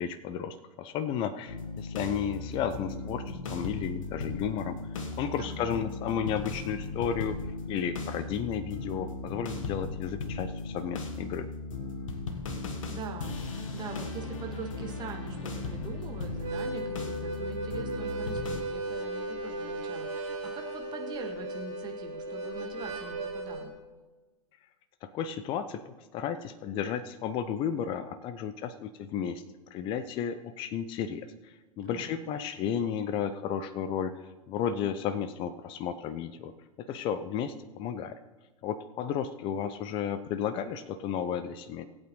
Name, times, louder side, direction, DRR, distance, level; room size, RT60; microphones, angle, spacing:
voice 1, 0.0-4.8 5.2-7.4 7.7-11.5 25.0-29.4 29.7-34.2 34.5-36.5 36.8-38.2 38.6-41.8, left 8 dB, 30° left, 13 dB, 0.6 m, -33 dB
sound 1, 1.5-18.6, left 3 dB, 60° left, 1.4 m, -37 dB
voice 2, 5.4-5.7 12.8-23.8 31.8-32.3, right 6 dB, 25° right, 3 dB, 1.7 m, -43 dB
Harmonica, 16.3-23.7, right 2 dB, 55° right, 4.6 m, -36 dB
19.5 x 8.5 x 3.2 m, 1.2 s
figure-of-eight pair, 100°, 19 cm